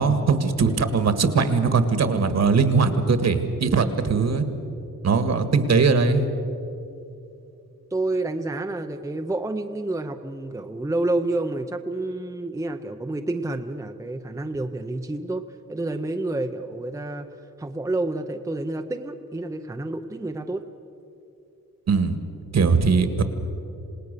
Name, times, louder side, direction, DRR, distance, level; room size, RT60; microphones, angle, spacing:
voice 1, 0.0-4.5 5.0-6.2 21.9-22.2 22.5-23.2, right 4 dB, 55° right, 9 dB, 1.7 m, -20 dB
voice 2, 7.9-15.4 15.7-17.3 17.6-20.6, right 2 dB, 10° right, 5 dB, 0.7 m, -29 dB
27.5 x 19.0 x 6.8 m, 2.7 s
wide cardioid pair, 155°, 32 cm